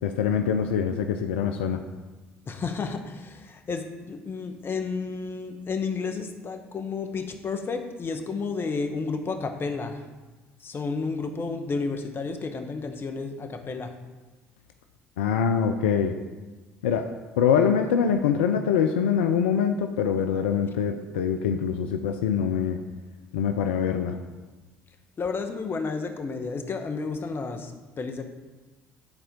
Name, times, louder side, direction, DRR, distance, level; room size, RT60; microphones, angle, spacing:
voice 1, 0.0-1.8 15.2-16.2 16.8-22.8 23.3-24.2, left 7 dB, 85° left, 6 dB, 0.5 m, -24 dB
voice 2, 2.5-10.0 10.6-13.9 25.2-27.7 28.0-28.2, left 4 dB, 40° left, 6 dB, 1.2 m, -31 dB
10.5 x 4.4 x 5.2 m, 1.2 s
hypercardioid pair, 60°, 6 cm